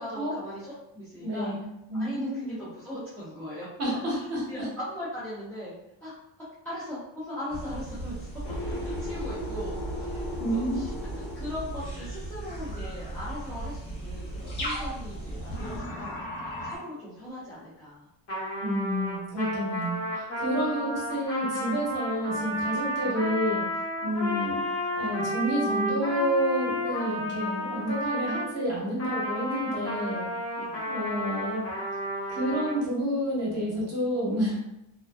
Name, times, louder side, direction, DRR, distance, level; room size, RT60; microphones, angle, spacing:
voice 1, 0.0-1.6 1.9-4.2 4.5-5.7 6.0-6.1 6.6-8.1 8.7-10.9 11.2-16.2 16.6-18.1 30.6-30.9, left 1 dB, 5° left, -13 dB, 0.3 m, -39 dB
voice 2, 1.2-1.6 1.9-2.5 3.8-4.7 10.1-10.8 18.6-23.6 24.0-24.6 25.0-30.3 30.9-31.7 32.3-34.6, equal, 35° right, -4 dB, 0.7 m, -29 dB
sound 1, 7.5-15.8, right 1 dB, 60° left, 1.1 m, -37 dB
sound 2, 8.4-13.0 15.2-16.8, left 1 dB, 75° left, 0.8 m, -37 dB
Trumpet, 18.3-28.5 29.0-32.8, equal, 35° left, 0.6 m, -32 dB
2.4 x 2.4 x 2.2 m, 0.85 s
cardioid pair, 175°, 45 cm